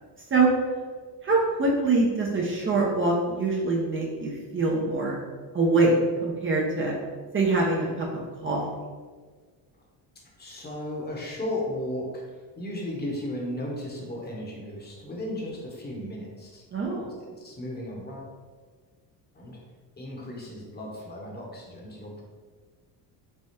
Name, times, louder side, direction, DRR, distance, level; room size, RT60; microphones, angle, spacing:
voice 1, 1.2-5.2 5.5-6.9 7.3-8.1 8.4-8.8 16.7-17.1, right 3 dB, 30° right, -3 dB, 0.6 m, -24 dB
voice 2, 10.4-16.6 17.2-18.3 19.3-19.6 20.0-22.2, left 1 dB, 20° left, -2 dB, 1.0 m, -35 dB
3.4 x 2.2 x 4.1 m, 1.5 s
cardioid pair, 100°, 44 cm